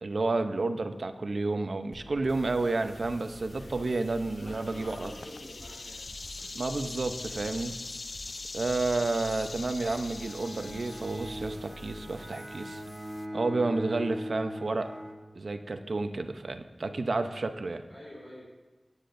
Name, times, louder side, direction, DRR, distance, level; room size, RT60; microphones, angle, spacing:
voice 1, 0.0-5.1 6.5-7.7 8.5-12.8 13.3-14.9 15.4-17.8, right 3 dB, 75° right, 8 dB, 0.7 m, -30 dB
sound 1, 1.9-12.1, equal, 10° left, 2.0 m, -49 dB
sound 2, 2.3-13.3, left 3 dB, 70° left, 0.4 m, -44 dB
voice 2, 3.5-4.0 4.4-6.1 17.3-17.5 17.9-18.4, equal, 50° left, -7 dB, 4.1 m, -47 dB
Bowed string instrument, 10.1-15.9, equal, 15° right, 1.2 m, -41 dB
17.0 x 9.6 x 2.6 m, 1.2 s
wide cardioid pair, 70°, 0 cm